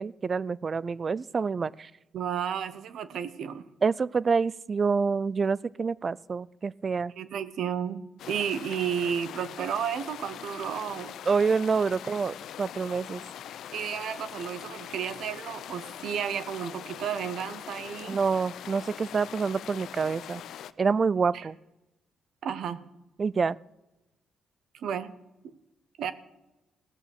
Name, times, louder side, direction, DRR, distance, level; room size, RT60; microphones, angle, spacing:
voice 1, 0.0-1.9 3.8-7.1 11.3-13.2 18.1-20.4 20.8-21.6 23.2-23.6, right 5 dB, 40° right, 22 dB, 0.3 m, -27 dB
voice 2, 2.1-3.6 7.2-11.1 13.7-18.2 21.3-21.5 22.4-22.8 24.7-25.1 26.0-26.1, right 8 dB, 75° right, 14 dB, 0.8 m, -32 dB
sound 1, 8.2-20.7, left 10 dB, 75° left, 0.4 m, -42 dB
17.5 x 6.8 x 6.2 m, 0.99 s
cardioid pair, 90°, 0 cm